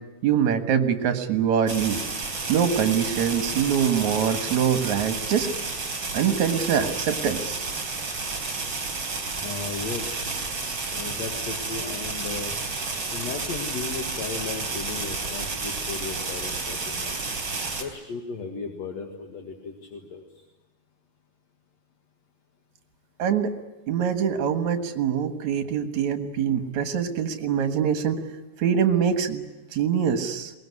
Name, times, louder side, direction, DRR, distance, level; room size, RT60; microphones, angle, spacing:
voice 1, 0.2-2.0 2.5-5.5 6.1-7.7 23.2-23.5 23.9-28.2 28.6-29.4 29.7-30.5, right 8 dB, 55° right, 7 dB, 2.6 m, -24 dB
sound 1, 1.7-17.8, right 4 dB, 30° right, 4.2 m, -31 dB
voice 2, 9.3-10.2 10.9-12.6 13.1-17.2 17.7-20.4, left 5 dB, 50° left, 4 dB, 2.5 m, -35 dB
22.5 x 21.0 x 9.8 m, 1.1 s
omnidirectional pair, 4.4 m